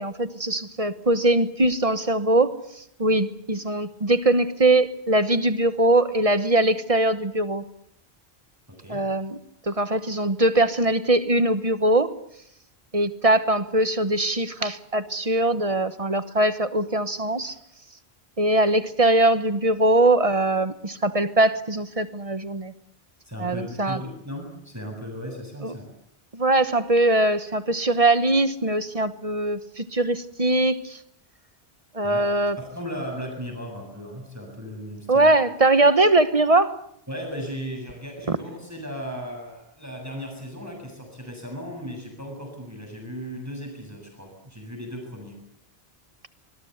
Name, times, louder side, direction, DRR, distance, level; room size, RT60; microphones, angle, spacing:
voice 1, 0.0-7.6 8.9-9.4 9.7-12.1 12.9-17.6 18.4-22.7 23.4-24.0 25.6-25.7 26.3-31.0 31.9-32.6 35.1-36.7 38.3-38.4, right 2 dB, 35° right, 12 dB, 1.2 m, -21 dB
voice 2, 8.7-9.1 17.4-17.6 23.2-25.8 32.0-32.2 32.6-35.3 37.1-45.4, equal, 15° right, 2 dB, 7.5 m, -36 dB
25.5 x 21.5 x 8.1 m, 0.71 s
omnidirectional pair, 1.1 m